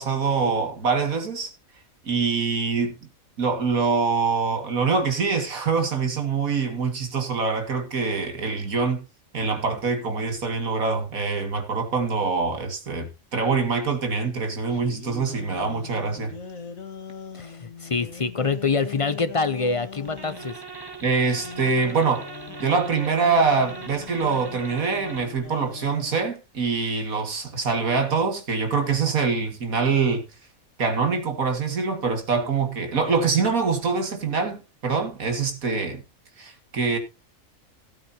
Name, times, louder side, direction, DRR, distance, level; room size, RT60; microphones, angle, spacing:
voice 1, 0.0-1.5 2.0-3.0 3.4-9.0 9.3-16.3 21.0-22.3 22.6-30.2 30.8-36.0 36.4-37.0, right 5 dB, 85° right, 2.5 m, -24 dB
sound 1, 14.7-20.5 21.3-26.3, left 6 dB, 75° left, 1.9 m, -41 dB
voice 2, 17.3-20.6, left 4 dB, 45° left, 0.4 m, -26 dB
sound 2, 20.0-25.4, right 4 dB, 20° right, 1.1 m, -40 dB
17.0 x 8.7 x 2.8 m
omnidirectional pair, 1.4 m